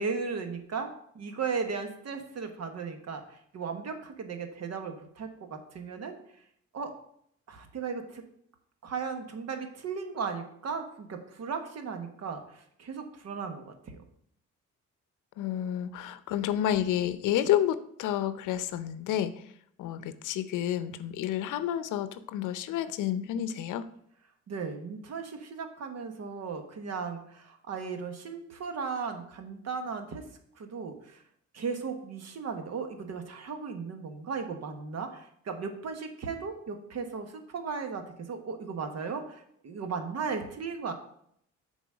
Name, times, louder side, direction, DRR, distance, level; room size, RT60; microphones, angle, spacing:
voice 1, 0.0-6.1 6.7-6.9 7.5-8.2 8.8-14.0 24.5-30.2 30.6-31.2 31.5-40.9, right 5 dB, 60° right, 6 dB, 1.3 m, -36 dB
voice 2, 15.4-19.3 19.8-23.9, left 11 dB, 85° left, 13 dB, 0.6 m, -30 dB
6.9 x 4.1 x 6.2 m, 0.69 s
cardioid pair, 90°, 30 cm